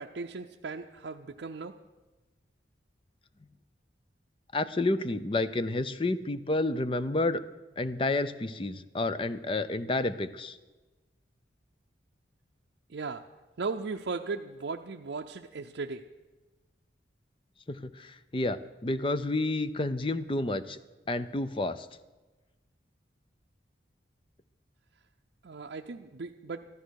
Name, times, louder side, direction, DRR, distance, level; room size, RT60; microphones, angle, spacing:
voice 1, 0.0-1.8 12.9-13.3 13.6-16.0 25.4-26.7, right 4 dB, 70° right, 2 dB, 0.5 m, -37 dB
voice 2, 4.5-7.4 7.8-10.6 17.7-20.8 21.1-21.9, left 2 dB, 30° left, 14 dB, 0.5 m, -30 dB
14.0 x 13.0 x 6.4 m, 1.2 s
head